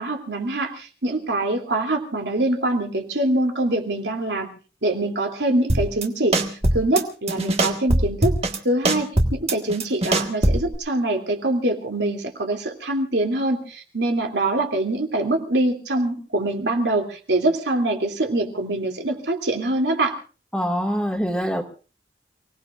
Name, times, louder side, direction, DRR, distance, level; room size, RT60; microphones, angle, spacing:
voice 1, 0.0-4.5 4.8-8.3 8.6-20.2, right 1 dB, 80° right, 3 dB, 2.9 m, -24 dB
sound 1, 5.7-6.0 6.3-7.0 7.3-8.6 8.8-10.7, right 1 dB, 35° right, 1.6 m, -21 dB
voice 2, 20.5-21.6, equal, 5° left, 1 dB, 2.0 m, -24 dB
29.5 x 18.5 x 2.5 m, 0.36 s
head